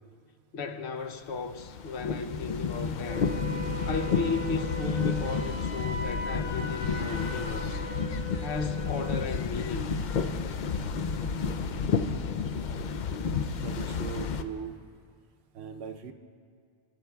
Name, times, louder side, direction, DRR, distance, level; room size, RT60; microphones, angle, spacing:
voice 1, 0.5-3.3 3.9-7.9 8.4-9.9, left 4 dB, 75° left, 1.0 m, -35 dB
sound 1, 1.3-14.4, left 5 dB, 60° left, 0.5 m, -31 dB
Wind instrument woodwind instrument, 3.1-9.4, right 1 dB, 30° left, 1.3 m, -39 dB
voice 2, 13.6-14.8 15.5-16.1, right 7 dB, 70° right, 0.9 m, -39 dB
23.0 x 11.0 x 2.3 m
omnidirectional pair, 1.1 m